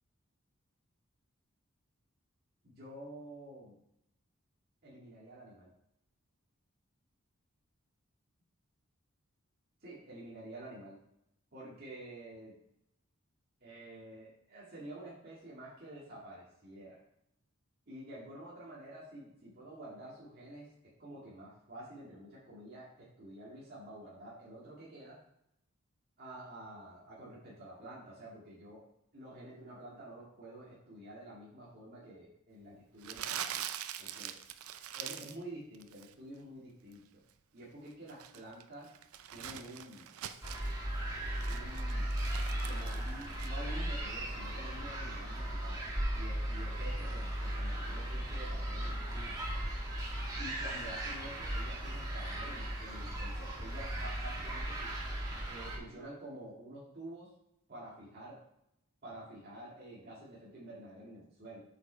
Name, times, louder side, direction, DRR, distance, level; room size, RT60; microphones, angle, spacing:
voice 1, 2.6-3.7 4.8-5.7 9.8-11.0 11.5-12.6 13.6-17.0 17.9-25.2 26.2-28.8 29.1-33.6 34.0-34.3 34.9-37.2 37.5-38.9 39.3-40.1 41.5-42.2 42.6-45.8 46.1-49.4 50.4-54.9 55.5-57.3 57.7-58.4 59.0-61.6, right 1 dB, 45° right, -8 dB, 2.2 m, -49 dB
Crumpling crinkling, 33.0-35.4 35.7-36.1 37.9-40.7 41.2-43.5, right 10 dB, 85° right, 0.5 m, -43 dB
sound 1, 40.4-55.8, right 1 dB, 15° right, 1.6 m, -37 dB
8.0 x 5.2 x 4.5 m, 0.79 s
head